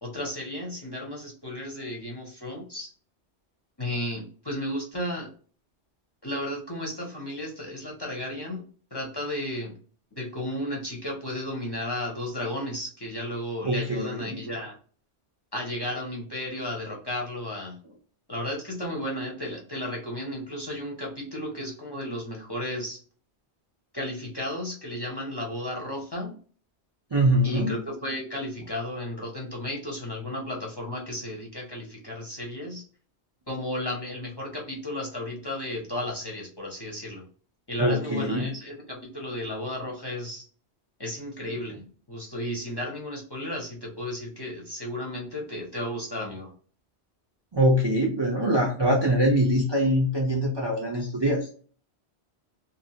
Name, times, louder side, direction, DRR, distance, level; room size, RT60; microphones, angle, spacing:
voice 1, 0.0-2.9 3.8-5.3 6.2-8.6 8.9-9.7 10.2-14.7 15.5-17.8 18.3-23.0 23.9-26.3 27.4-32.8 33.5-37.2 37.7-40.4 41.0-41.8 42.1-46.5, left 1 dB, 25° left, -2 dB, 0.6 m, -33 dB
voice 2, 13.6-14.4 27.1-27.8 37.8-38.5 47.5-51.5, equal, 35° right, -1 dB, 0.4 m, -23 dB
2.7 x 2.4 x 2.7 m, 0.43 s
omnidirectional pair, 1.1 m